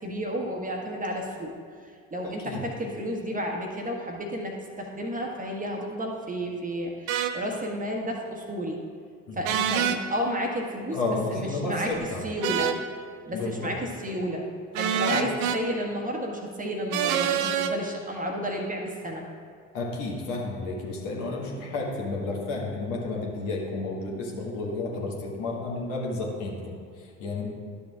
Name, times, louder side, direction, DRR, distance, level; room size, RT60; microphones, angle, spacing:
voice 1, 0.0-1.5 1.8-8.8 9.3-11.0 11.3-11.9 12.2-12.7 13.3-14.4 14.8-19.2, equal, 20° right, 0 dB, 1.3 m, -31 dB
voice 2, 2.2-2.6 9.2-9.4 10.9-12.2 13.3-13.8 15.1-15.2 19.7-27.5, left 2 dB, 60° left, -3 dB, 1.6 m, -32 dB
sound 1, 7.1-7.3 9.4-10.0 12.4-12.8 14.7-15.6 16.9-17.7, right 9 dB, 55° right, 0.6 m, -26 dB
12.5 x 7.0 x 2.4 m, 2.1 s
figure-of-eight pair, 50°, 37 cm